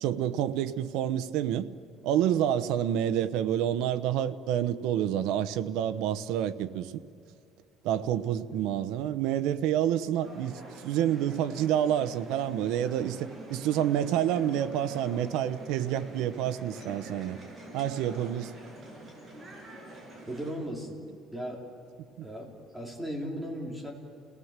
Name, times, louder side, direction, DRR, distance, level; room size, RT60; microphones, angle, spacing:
voice 1, 0.0-1.7 2.0-6.9 7.8-17.4 17.7-18.5, right 10 dB, 85° right, 0.9 m, -28 dB
Hoogstraat-Rotterdam, 10.2-20.5, right 1 dB, 20° right, 6.2 m, -46 dB
voice 2, 20.3-21.0 21.3-21.6 22.2-23.9, equal, 5° right, 3.5 m, -37 dB
29.5 x 18.5 x 7.5 m
cardioid pair, 160°, 0 cm